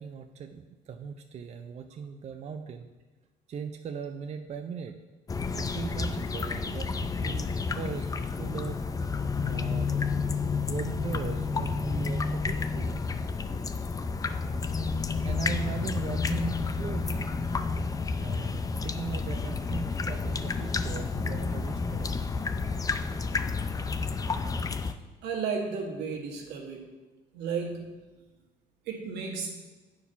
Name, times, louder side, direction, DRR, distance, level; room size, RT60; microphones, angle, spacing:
voice 1, 0.0-2.9 3.5-4.9 5.5-8.8 9.5-10.0 10.7-13.0 15.2-17.3 18.2-22.1, right 6 dB, 40° right, 6 dB, 0.6 m, -39 dB
sound 1, 5.3-24.9, left 4 dB, 20° left, 0.5 m, -30 dB
voice 2, 25.2-26.8 27.3-27.9 28.9-29.6, right 5 dB, 85° right, 0 dB, 1.7 m, -33 dB
8.8 x 4.7 x 5.6 m, 1.2 s
cardioid pair, 110°, 17 cm